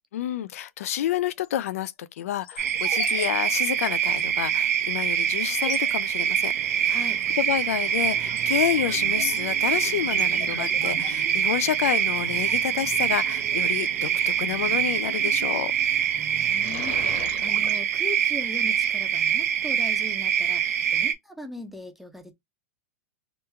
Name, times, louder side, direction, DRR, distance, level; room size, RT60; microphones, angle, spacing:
voice 1, 0.1-6.5 6.9-15.7, left 11 dB, 80° left, 0.3 m, -29 dB
sound 1, 1.4-1.9 2.4-3.3 3.5-3.6 4.1-4.2 4.9-5.0 5.4-5.9 7.2-7.5 7.9-13.9 15.5-15.8 16.2-17.8, left 6 dB, 55° left, 1.1 m, -40 dB
sound 2, 2.6-21.1, right 9 dB, 80° right, 0.7 m, -25 dB
sound 3, 6.5-17.2, right 8 dB, 40° right, 1.1 m, -44 dB
voice 2, 6.9-7.2 16.1-22.3, left 1 dB, ahead, 0.6 m, -39 dB
3.0 x 2.2 x 3.5 m
hypercardioid pair, 130°, 8 cm